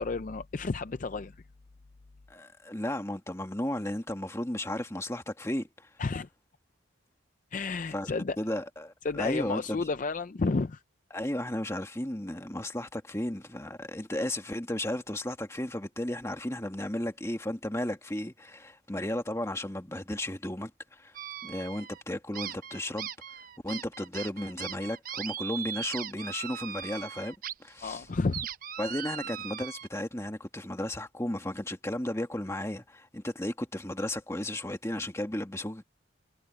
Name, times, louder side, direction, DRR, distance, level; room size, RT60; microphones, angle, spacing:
voice 1, 0.0-1.4 6.0-6.3 7.5-8.4 9.0-10.8 27.8-28.5, left 3 dB, 40° left, 0.4 m, -31 dB
voice 2, 2.3-5.9 7.9-8.1 8.4-9.8 11.1-21.2 21.4-23.1 23.6-28.0 28.8-35.8, left 1 dB, 15° left, 1.8 m, -34 dB
sound 1, 21.1-22.0 22.3-27.5 27.9-29.9, right 9 dB, 45° right, 0.7 m, -39 dB
head